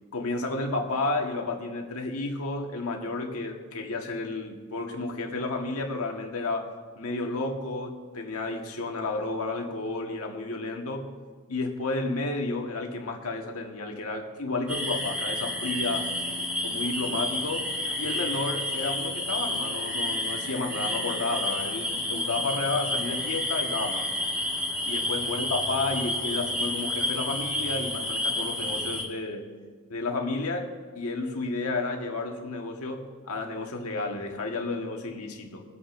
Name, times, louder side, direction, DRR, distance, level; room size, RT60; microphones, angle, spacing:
voice 1, 0.1-6.7 7.0-11.1 11.5-16.1 16.6-24.1 24.8-29.5 29.9-35.6, left 3 dB, 85° left, 2 dB, 1.5 m, -31 dB
sound 1, 14.7-29.0, left 1 dB, 5° right, 1.7 m, -30 dB
24.0 x 8.7 x 2.6 m, 1.5 s
head